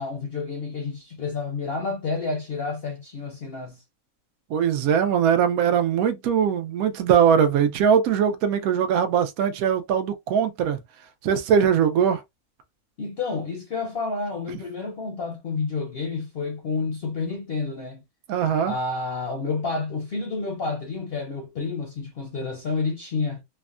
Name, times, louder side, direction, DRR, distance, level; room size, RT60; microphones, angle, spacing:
voice 1, 0.0-3.8 13.0-18.0 18.6-23.4, left 4 dB, 55° left, 0.7 m, -30 dB
voice 2, 4.5-10.8 11.2-12.2 18.3-18.7, right 8 dB, 80° right, 1.1 m, -21 dB
3.4 x 2.1 x 2.4 m
omnidirectional pair, 1.5 m